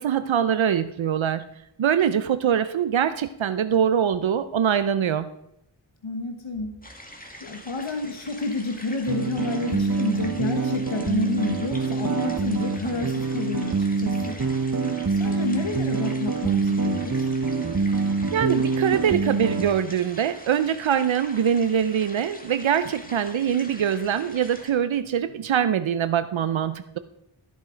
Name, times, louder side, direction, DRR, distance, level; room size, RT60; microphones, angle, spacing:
voice 1, 0.0-1.4 1.8-5.3 18.3-27.0, right 8 dB, 85° right, 12 dB, 0.6 m, -23 dB
voice 2, 6.0-6.8 7.4-14.7 15.1-17.3, left 3 dB, 85° left, 4 dB, 1.2 m, -30 dB
sound 1, 6.8-24.7, left 1 dB, 20° left, 2.1 m, -44 dB
sound 2, 9.1-19.7, right 4 dB, 40° right, 1.0 m, -25 dB
14.0 x 7.3 x 5.0 m, 0.81 s
wide cardioid pair, 50°, 45 cm